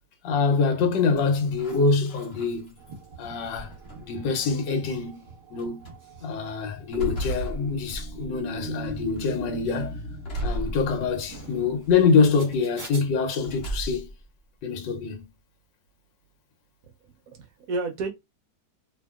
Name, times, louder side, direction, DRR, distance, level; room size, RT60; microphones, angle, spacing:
voice 1, 0.2-2.7 3.2-3.7 4.0-5.2 5.5-5.8 6.2-10.0 10.4-14.1 14.6-15.2, left 5 dB, 85° left, 1.4 m, -25 dB
sound 1, 1.2-3.0 3.5-4.3 5.0-5.1 5.6-5.9 6.5-8.4 8.8-9.4 10.2-11.4 11.8-12.4 13.4-14.2, right 1 dB, 50° left, 0.8 m, -35 dB
sound 2, 2.8-13.0, right 3 dB, 30° right, 1.0 m, -47 dB
sound 3, 7.6-11.9, right 2 dB, 90° right, 0.5 m, -39 dB
voice 2, 16.8-18.1, right 3 dB, 70° right, 0.8 m, -32 dB
2.8 x 2.7 x 2.3 m
omnidirectional pair, 1.9 m